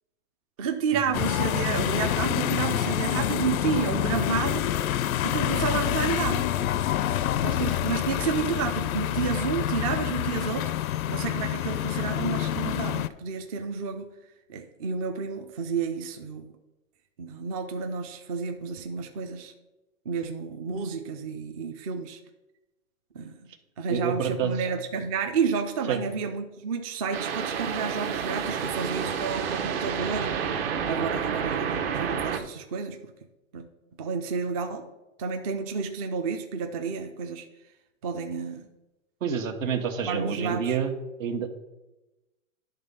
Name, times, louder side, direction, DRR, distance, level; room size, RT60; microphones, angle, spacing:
voice 1, 0.6-4.6 5.2-6.5 7.4-14.1 14.5-16.5 17.2-19.5 20.1-22.2 23.1-23.5 23.8-30.4 30.9-33.0 33.5-33.7 34.0-34.9 35.2-37.5 38.0-38.6 40.1-40.7, right 6 dB, 30° right, 5 dB, 0.4 m, -30 dB
sound 1, 1.1-13.1, left 11 dB, 90° left, 0.5 m, -27 dB
voice 2, 23.9-24.7 25.9-26.0 39.2-41.5, right 7 dB, 70° right, 7 dB, 1.3 m, -28 dB
sound 2, 27.1-32.4, right 7 dB, 45° right, 0.9 m, -29 dB
10.5 x 3.6 x 5.3 m, 1.0 s
hypercardioid pair, 150°, 41 cm